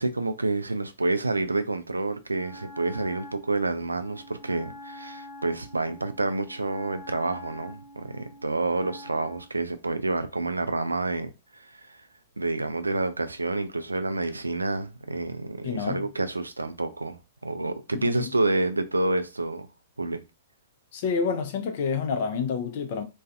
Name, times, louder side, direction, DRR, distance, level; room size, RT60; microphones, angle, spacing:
voice 1, 0.0-12.0 12.4-19.7 20.0-20.2, right 2 dB, 80° right, 0.3 m, -29 dB
Wind instrument woodwind instrument, 2.3-9.5, left 1 dB, 15° right, 0.9 m, -45 dB
voice 2, 15.6-16.1 17.9-18.3 20.9-23.0, left 6 dB, 50° left, 0.5 m, -28 dB
2.4 x 2.2 x 2.5 m
figure-of-eight pair, 110°, 0 cm